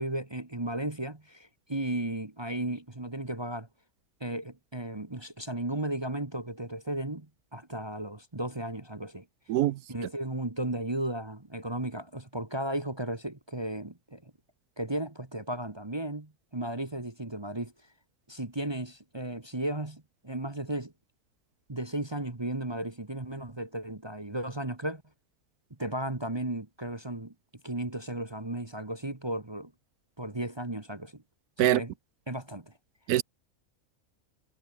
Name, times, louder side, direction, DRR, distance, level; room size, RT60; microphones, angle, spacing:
voice 1, 0.0-3.7 4.2-9.2 9.9-14.3 14.8-17.7 18.3-20.9 21.7-25.0 25.8-27.3 27.6-29.7 30.2-31.2 31.6-31.9 32.3-32.7, right 1 dB, 20° right, 1.4 m, -35 dB
voice 2, 9.5-9.8 31.6-31.8 33.1-33.2, right 14 dB, 85° right, 1.1 m, -23 dB
omnidirectional pair, 1.6 m